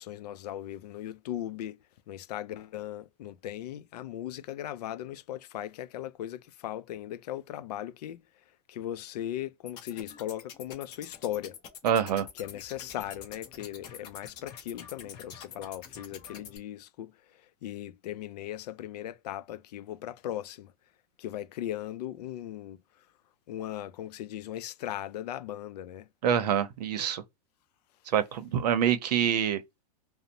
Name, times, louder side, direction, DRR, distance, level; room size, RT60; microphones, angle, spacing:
voice 1, 0.0-1.8 2.1-8.2 8.7-11.6 12.4-17.1 17.6-20.7 21.2-22.8 23.5-26.1, left 12 dB, 80° left, 0.4 m, -38 dB
sound 1, 9.7-16.6, left 7 dB, 20° left, 0.5 m, -47 dB
voice 2, 11.8-12.3 26.2-27.2 28.1-29.6, right 9 dB, 85° right, 0.7 m, -26 dB
2.6 x 2.0 x 2.8 m
supercardioid pair, 175°, 20 cm